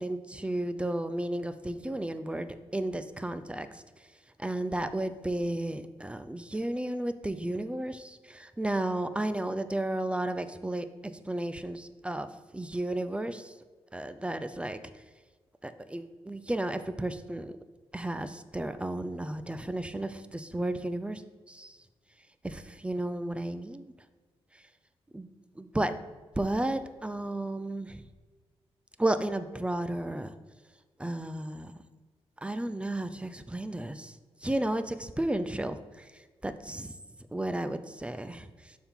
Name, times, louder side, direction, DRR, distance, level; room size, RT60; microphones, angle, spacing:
voice 1, 0.0-3.7 4.4-10.9 11.3-13.5 13.9-14.8 15.6-17.5 17.9-21.2 21.5-21.8 22.4-23.9 25.1-25.3 25.6-25.9 26.4-28.0 29.0-30.3 31.0-31.7 32.4-34.2 34.4-36.1 36.4-37.0 37.3-38.8, right 1 dB, 10° right, 12 dB, 0.5 m, -33 dB
6.8 x 3.7 x 5.6 m, 1.3 s
cardioid pair, 65°, 11 cm